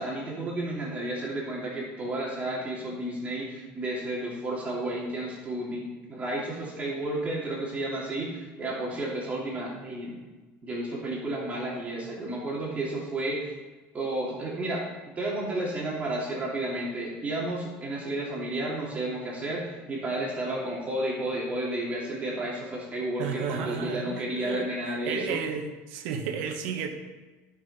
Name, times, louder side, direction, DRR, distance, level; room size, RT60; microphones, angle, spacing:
voice 1, 0.0-10.2 10.6-13.5 13.9-14.8 15.2-25.4, right 1 dB, 25° right, -5 dB, 2.6 m, -32 dB
voice 2, 23.2-26.9, right 6 dB, 90° right, 4 dB, 1.4 m, -33 dB
14.0 x 5.9 x 4.3 m, 1.2 s
cardioid pair, 135°, 6 cm